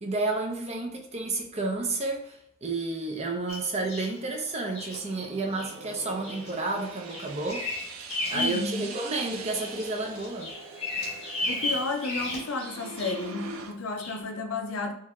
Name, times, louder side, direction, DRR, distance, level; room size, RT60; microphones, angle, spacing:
voice 1, 0.0-2.4 2.6-7.7 8.3-10.5, right 3 dB, 30° right, 0.8 m, -31 dB
Bird vocalization bird call bird song, 3.5-4.2 4.7-5.0 5.5-5.7 6.2-6.5 6.8-8.7 9.1-9.8 10.2-13.3 14.0-14.2, left 2 dB, 30° left, 1.3 m, -34 dB
sound 1, 3.7-13.7, right 3 dB, 85° right, 0.6 m, -43 dB
voice 2, 8.3-8.9 11.5-14.9, left 3 dB, 70° left, 0.6 m, -32 dB
4.6 x 2.8 x 3.5 m
head